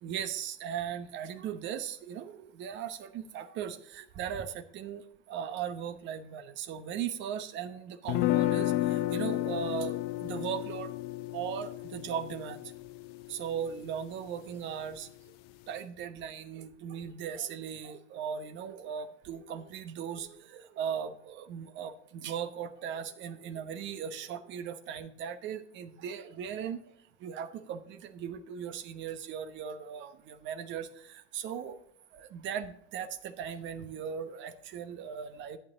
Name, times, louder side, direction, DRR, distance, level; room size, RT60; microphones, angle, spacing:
voice 1, 0.0-5.0 5.3-8.7 9.1-9.9 10.2-10.9 11.3-12.6 13.3-15.1 15.7-20.3 20.5-26.8 27.2-30.9 31.3-31.8 32.3-35.6, right 8 dB, 30° right, 11 dB, 1.0 m, -38 dB
sound 1, 8.1-14.1, left 15 dB, 30° left, 0.4 m, -32 dB
11.5 x 9.1 x 3.9 m, 0.71 s
figure-of-eight pair, 95°, 36 cm